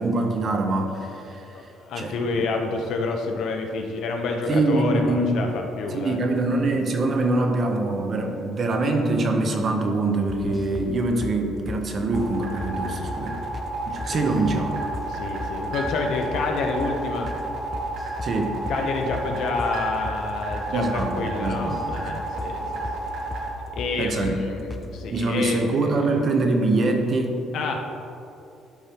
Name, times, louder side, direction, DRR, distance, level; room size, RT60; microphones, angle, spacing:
voice 1, 0.0-1.5 2.0-2.1 4.5-5.4 5.9-13.4 13.9-14.9 18.2-18.6 20.7-21.8 24.0-24.4 25.1-27.4, right 2 dB, 35° right, 4 dB, 0.7 m, -24 dB
voice 2, 1.5-6.2 14.1-14.3 15.1-17.3 18.7-22.8 23.7-26.0 27.5-27.9, left 3 dB, 60° left, 3 dB, 0.8 m, -28 dB
sound 1, 10.3-10.9 11.2-11.4 11.7-11.8 12.1-12.3 12.6-12.8 13.1-13.2 13.5-13.7 14.0-14.6 14.9-15.1 15.4-15.6 15.9-16.0 16.3-16.5 16.8-17.0 17.3-17.4 17.7-18.4 18.7-18.8 19.1-19.3 19.6-19.8 20.0-20.2 20.5-20.7 21.0-21.1 21.4-22.1 22.4-22.5 22.8-23.0 23.3-23.5 23.8-23.9 24.2-24.4 24.7-24.9, left 3 dB, 20° left, 0.4 m, -35 dB
sound 2, 12.1-23.5, right 3 dB, 60° right, 1.5 m, -32 dB
11.5 x 4.3 x 3.5 m, 2.7 s
cardioid pair, 170°, 0 cm